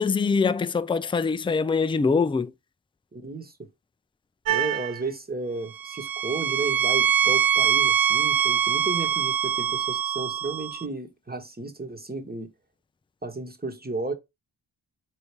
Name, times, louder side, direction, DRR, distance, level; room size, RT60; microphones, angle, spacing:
voice 1, 0.0-2.5, left 5 dB, 10° left, 0.3 m, -23 dB
voice 2, 3.1-3.7 4.5-12.5 13.2-14.1, right 3 dB, 20° right, 1.3 m, -33 dB
sound 1, 4.5-5.0 5.7-10.8, right 9 dB, 50° right, 0.5 m, -24 dB
4.0 x 3.1 x 3.3 m
cardioid pair, 40°, 46 cm